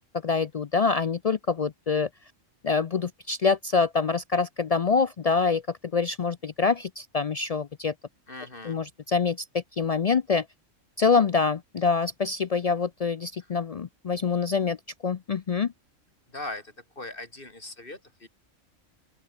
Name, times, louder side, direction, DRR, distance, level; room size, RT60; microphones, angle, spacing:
voice 1, 0.2-2.1 2.6-7.9 8.6-10.5 11.0-14.8 15.0-15.7, left 5 dB, 70° left, 0.3 m, -25 dB
voice 2, 8.3-8.8 16.3-18.3, left 2 dB, 40° left, 4.9 m, -40 dB
open air
omnidirectional pair, 1.3 m